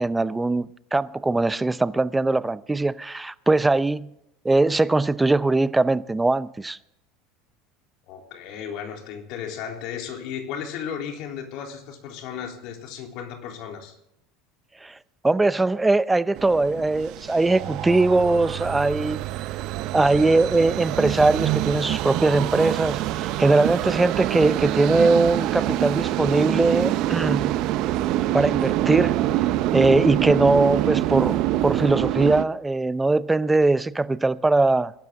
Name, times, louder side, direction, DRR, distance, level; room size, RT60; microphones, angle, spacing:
voice 1, 0.0-4.1 4.4-6.8 14.8-15.0 15.2-19.2 19.9-27.6 28.3-29.2 29.7-34.9, right 2 dB, 10° right, 0.6 m, -21 dB
voice 2, 8.1-14.0, left 8 dB, 60° left, 3.6 m, -35 dB
sound 1, 16.4-32.4, right 14 dB, 60° right, 0.8 m, -25 dB
21.5 x 12.0 x 3.8 m
hypercardioid pair, 85°, 0 cm